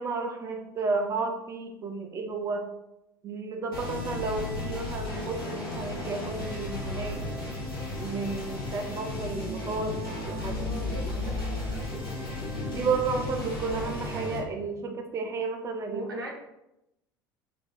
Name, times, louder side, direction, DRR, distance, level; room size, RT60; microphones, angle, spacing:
voice 1, 0.0-2.6 3.2-7.2 8.0-10.0 10.3-10.6 10.8-11.2 11.9-12.0 12.7-16.0, right 4 dB, 25° right, 3 dB, 0.4 m, -32 dB
sound 1, 3.7-14.4, left 2 dB, 80° left, 0.9 m, -34 dB
voice 2, 10.5-11.8 15.8-16.3, right 1 dB, 80° right, -1 dB, 0.6 m, -40 dB
2.6 x 2.2 x 3.3 m, 0.87 s
figure-of-eight pair, 65°, 11 cm